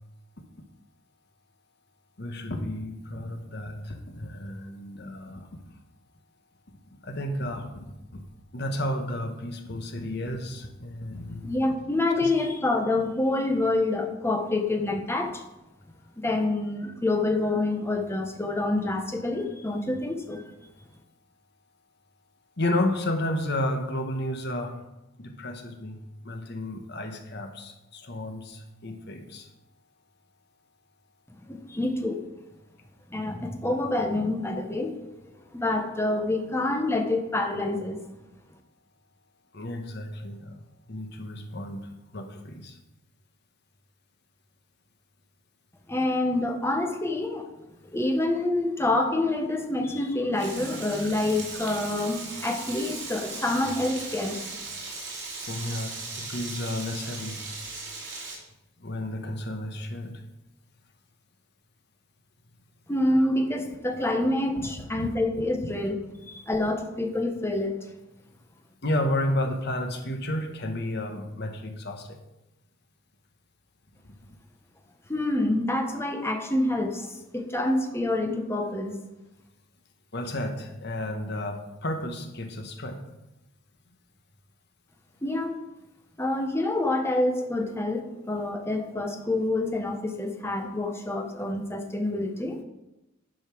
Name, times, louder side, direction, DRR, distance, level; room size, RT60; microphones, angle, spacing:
voice 1, 2.2-5.5 7.0-7.9 8.1-8.2 8.5-11.5 12.2-12.3 22.6-24.7 25.2-29.5 39.5-40.6 40.9-42.8 55.4-57.5 58.8-60.2 64.6-64.7 65.0-65.1 68.8-72.2 74.0-74.2 80.1-83.0, left 1 dB, 55° left, 5 dB, 1.4 m, -32 dB
voice 2, 11.4-15.4 16.2-20.5 31.5-32.3 33.1-35.1 35.5-38.0 45.9-47.5 47.9-54.5 62.9-66.0 66.3-67.8 75.1-79.0 85.2-85.6 86.2-92.6, left 2 dB, 15° left, 4 dB, 1.1 m, -27 dB
Frying (food), 50.3-58.3, right 3 dB, 60° right, 3.0 m, -38 dB
10.5 x 5.6 x 6.1 m, 0.95 s
head